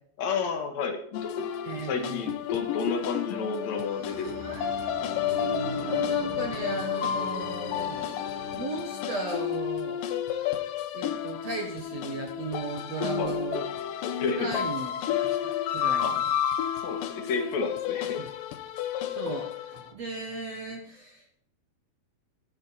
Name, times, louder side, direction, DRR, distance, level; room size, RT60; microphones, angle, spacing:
voice 1, 0.2-1.3 1.8-4.4 13.2-13.4 14.2-14.5 16.0-16.2 16.8-18.2, left 5 dB, 55° left, 5 dB, 2.3 m, -31 dB
sound 1, 1.1-19.9, left 10 dB, 80° left, 2.0 m, -31 dB
voice 2, 1.6-2.2 4.4-4.9 5.2-10.0 10.9-13.7 14.3-14.9 15.2-16.2 18.2-18.3 19.1-21.4, right 3 dB, 60° right, 2 dB, 1.7 m, -36 dB
sound 2, 3.4-9.3, right 2 dB, 75° right, 4.2 m, -42 dB
16.0 x 12.0 x 4.3 m, 0.65 s
omnidirectional pair, 5.2 m